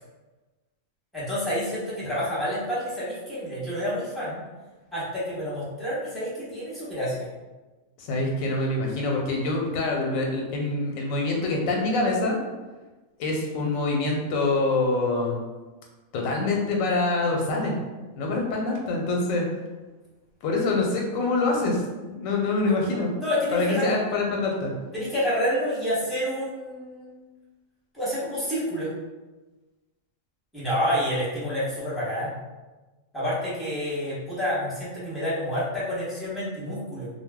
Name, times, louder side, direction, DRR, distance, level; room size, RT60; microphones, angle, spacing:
voice 1, 1.1-4.4 4.9-7.3 22.6-22.8 23.2-23.9 24.9-27.1 27.9-28.9 30.5-32.3 33.1-37.1, equal, ahead, -10 dB, 0.8 m, -28 dB
voice 2, 8.0-12.4 13.2-15.4 16.1-17.8 18.2-19.4 20.4-21.8 22.1-23.1 23.5-24.7, left 2 dB, 90° left, 0 dB, 1.0 m, -25 dB
2.3 x 2.1 x 3.4 m, 1.2 s
omnidirectional pair, 1.3 m